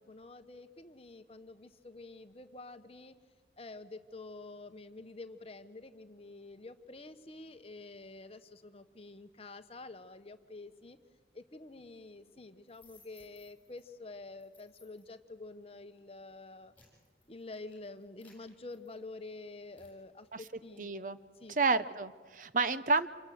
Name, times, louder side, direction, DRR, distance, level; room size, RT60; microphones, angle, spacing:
voice 1, 0.0-3.2 3.6-11.0 11.3-16.7 17.3-21.0 21.4-21.6, left 2 dB, 35° left, 10 dB, 1.0 m, -48 dB
sound 1, 12.7-13.8 14.4-15.2 15.8-16.0 16.4-19.3 19.8-20.0, left 3 dB, 10° left, 7.2 m, -63 dB
voice 2, 20.8-21.2 21.5-23.1, right 4 dB, 45° right, 13 dB, 0.8 m, -30 dB
27.5 x 23.5 x 7.8 m, 1.4 s
head